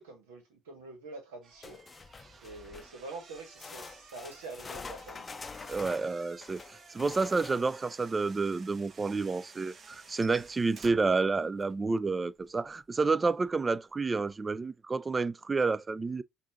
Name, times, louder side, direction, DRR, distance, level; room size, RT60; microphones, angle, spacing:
voice 1, 0.0-1.8 2.4-5.8, right 3 dB, 90° right, 1.4 m, -46 dB
sound 1, 1.4-11.7 12.0-12.4, right 5 dB, 55° right, 1.1 m, -54 dB
sound 2, 1.6-3.0 3.6-7.9 11.1-11.2 11.6-11.7 12.4-12.5, left 4 dB, 35° left, 0.5 m, -46 dB
voice 2, 5.7-6.6 6.9-16.2, right 4 dB, 30° right, 0.4 m, -29 dB
5.4 x 2.7 x 2.4 m
hypercardioid pair, 55°, 0 cm